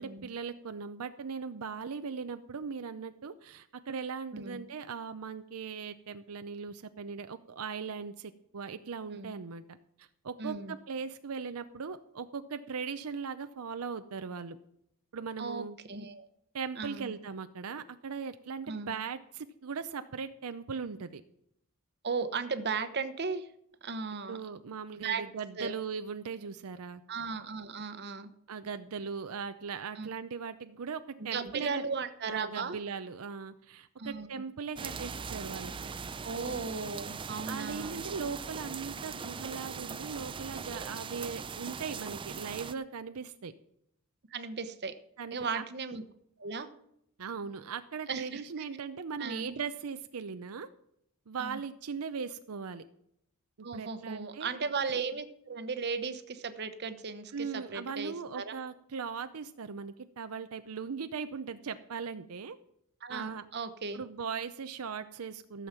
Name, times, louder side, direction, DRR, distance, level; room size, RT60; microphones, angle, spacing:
voice 1, 0.0-14.6 15.1-15.8 16.5-21.2 24.3-27.0 28.5-31.8 32.3-35.7 37.5-43.5 45.2-45.6 47.2-50.7 51.3-52.8 53.6-54.5 57.3-62.6 63.1-63.5 63.9-65.7, right 5 dB, 80° right, 10 dB, 0.6 m, -39 dB
voice 2, 4.3-4.6 9.1-9.3 10.4-10.7 15.4-16.3 16.8-17.1 18.7-18.9 22.0-23.5 23.8-24.4 25.0-25.2 25.6-25.8 27.1-28.3 30.0-30.1 31.2-32.8 34.0-34.3 36.2-38.0 44.3-44.9 45.3-46.0 46.4-46.7 48.1-48.4 49.2-49.6 51.4-51.6 53.6-58.6 63.0-64.0, right 5 dB, 50° right, 10 dB, 1.0 m, -36 dB
sound 1, 34.8-42.7, right 5 dB, 25° right, 0.4 m, -40 dB
15.0 x 7.2 x 5.9 m, 0.75 s
head